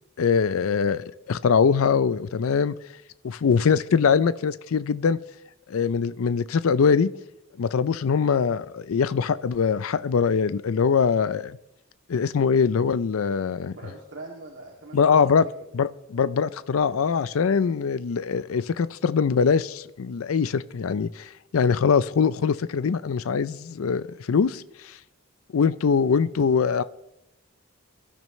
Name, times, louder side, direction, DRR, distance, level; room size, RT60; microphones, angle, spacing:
voice 1, 0.2-2.7 3.2-5.2 5.7-7.1 7.6-11.6 12.1-13.7 14.9-15.5 15.7-25.0 25.5-26.8, left 6 dB, 85° left, 16 dB, 0.4 m, -22 dB
voice 2, 13.7-15.4, right 2 dB, 60° right, -2 dB, 2.3 m, -42 dB
23.5 x 12.5 x 3.1 m, 0.84 s
head